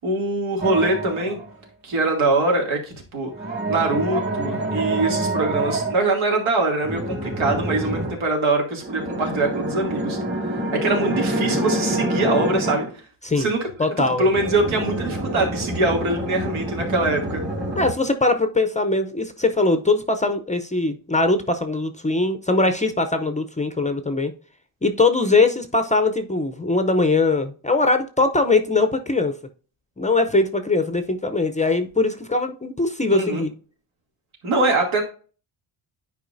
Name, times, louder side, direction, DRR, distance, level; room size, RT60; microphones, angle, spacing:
voice 1, 0.0-1.4 1.8-3.3 3.7-10.2 10.7-12.9 13.3-13.7 14.0-17.4 33.1-33.4 34.4-35.0, right 2 dB, 80° right, 0 dB, 2.6 m, -23 dB
sound 1, 0.6-1.5 3.3-6.0 6.8-8.2 8.8-12.9 14.3-17.9, right 1 dB, 20° right, 2.0 m, -26 dB
voice 2, 13.8-14.3 17.8-24.3 24.8-29.3 30.0-33.5, left 3 dB, 15° left, 8 dB, 0.5 m, -21 dB
10.0 x 4.8 x 2.6 m, 0.38 s
cardioid pair, 130°, 48 cm